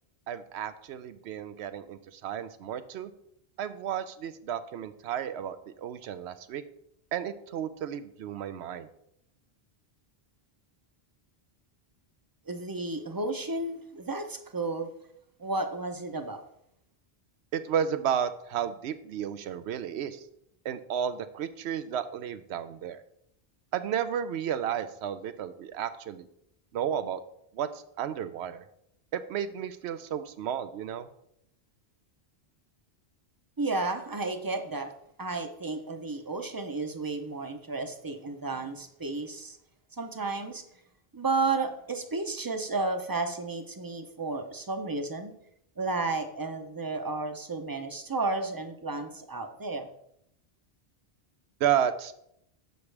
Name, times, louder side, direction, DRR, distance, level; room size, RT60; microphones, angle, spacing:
voice 1, 0.3-3.1 3.6-6.6 7.1-8.9 17.5-20.2 20.6-23.0 23.7-26.3 26.7-27.2 27.5-28.6 29.1-31.1 51.6-52.1, right 9 dB, 90° right, 12 dB, 0.9 m, -32 dB
voice 2, 12.5-14.9 15.4-16.4 33.6-34.9 35.2-39.6 40.0-40.6 41.1-45.3 45.8-49.9, right 3 dB, 25° right, 6 dB, 0.5 m, -32 dB
7.0 x 6.6 x 3.3 m, 0.74 s
omnidirectional pair, 1.1 m